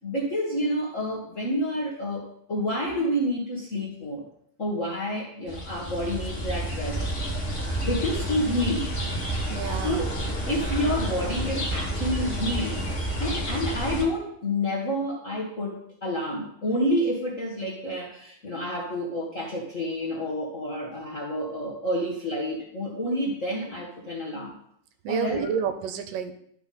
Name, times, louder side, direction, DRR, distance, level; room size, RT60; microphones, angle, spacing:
voice 1, 0.0-4.2 4.6-7.0 7.8-8.9 9.7-10.1 10.5-24.5 25.1-25.5, equal, 50° left, -4 dB, 0.8 m, -29 dB
sound 1, 5.5-14.0, right 1 dB, 30° left, 1.2 m, -30 dB
voice 2, 9.5-10.1 25.1-26.3, right 7 dB, 80° right, 8 dB, 2.3 m, -30 dB
12.0 x 5.7 x 4.2 m, 0.68 s
omnidirectional pair, 4.0 m